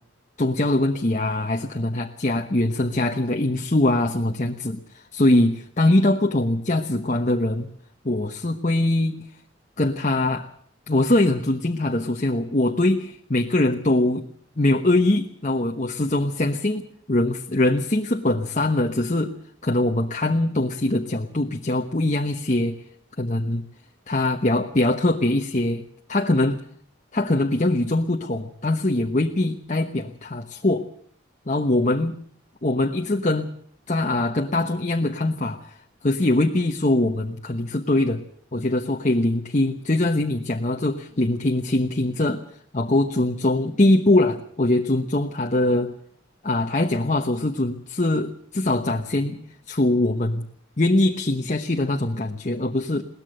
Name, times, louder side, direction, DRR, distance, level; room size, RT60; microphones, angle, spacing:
voice 1, 0.4-7.7 8.0-9.2 9.8-10.5 10.9-14.3 14.6-16.8 17.1-19.3 19.6-22.8 23.2-23.6 24.1-25.8 26.1-26.6 27.1-30.9 31.5-32.1 32.6-33.5 33.9-35.8 36.0-38.2 38.5-42.4 42.7-45.9 46.4-49.4 49.7-50.4 50.8-53.0, left 1 dB, 35° left, 4 dB, 1.1 m, -22 dB
21.5 x 18.0 x 6.6 m, 0.62 s
head